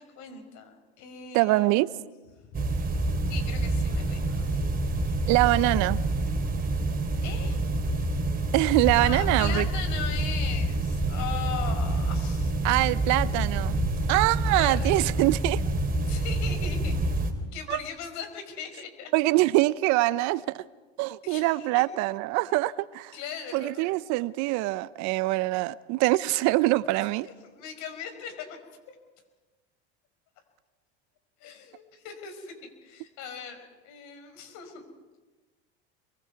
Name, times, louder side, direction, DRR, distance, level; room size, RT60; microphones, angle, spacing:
voice 1, 0.0-1.9 2.5-2.6 3.3-4.8 7.2-7.6 9.0-12.5 14.0-14.2 14.5-15.2 16.0-17.0 17.5-19.1 21.2-21.9 23.1-24.1 27.2-28.6 31.4-34.8, left 7 dB, 60° left, 5.3 m, -39 dB
voice 2, 1.3-1.9 5.3-6.0 8.5-9.6 12.6-13.8 14.1-15.6 17.7-17.8 19.1-20.6 21.0-23.2 23.5-27.3, right 19 dB, 60° right, 0.8 m, -24 dB
sound 1, 2.5-17.3, right 2 dB, 25° right, 3.4 m, -27 dB
27.5 x 23.0 x 4.7 m
hypercardioid pair, 90°, 32 cm